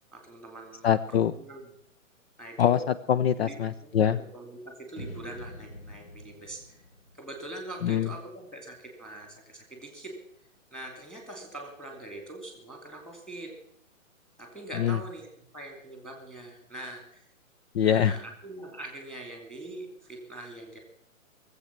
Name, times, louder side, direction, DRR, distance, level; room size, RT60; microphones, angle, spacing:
voice 1, 0.1-0.9 1.2-1.7 2.4-2.8 3.4-6.8 7.2-10.1 10.7-13.5 14.4-15.3 15.5-17.3 17.8-20.8, right 2 dB, ahead, 3 dB, 2.7 m, -43 dB
voice 2, 0.8-1.3 2.6-2.8 3.1-4.2 7.8-8.1 14.8-15.0 17.7-18.2, left 9 dB, 50° left, 13 dB, 0.5 m, -23 dB
sound 1, 5.0-8.2, left 1 dB, 85° left, 2.3 m, -46 dB
19.5 x 8.0 x 7.3 m, 0.70 s
hypercardioid pair, 145°, 40 cm